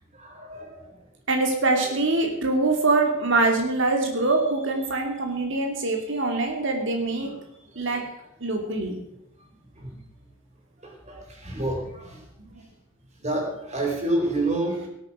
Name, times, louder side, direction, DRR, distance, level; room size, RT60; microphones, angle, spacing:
voice 1, 0.1-1.1 2.3-2.4 7.2-7.4 7.9-8.0 8.6-8.7 9.7-10.0 10.8-12.2 13.2-14.9, right 1 dB, 35° right, 1 dB, 4.4 m, -29 dB
voice 2, 1.3-7.3 7.8-8.1 8.4-9.0, right 3 dB, 60° right, 3 dB, 2.6 m, -24 dB
18.5 x 9.0 x 6.1 m, 0.78 s
head